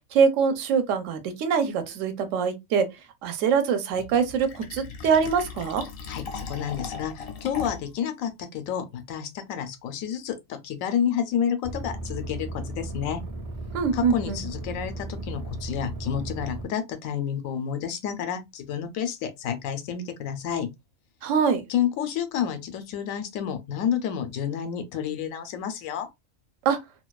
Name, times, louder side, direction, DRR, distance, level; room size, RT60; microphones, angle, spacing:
voice 1, 0.1-2.9 3.2-5.8 13.7-14.4 21.2-21.6 26.6-26.8, right 6 dB, 75° right, 0.9 m, -23 dB
Fill (with liquid), 4.0-8.0, left 5 dB, 60° left, 0.7 m, -38 dB
voice 2, 6.1-13.2 13.9-20.7 21.7-26.1, left 8 dB, 85° left, 1.0 m, -30 dB
sound 1, 11.6-16.6, right 2 dB, 55° right, 0.4 m, -35 dB
2.5 x 2.2 x 2.2 m
omnidirectional pair, 1.4 m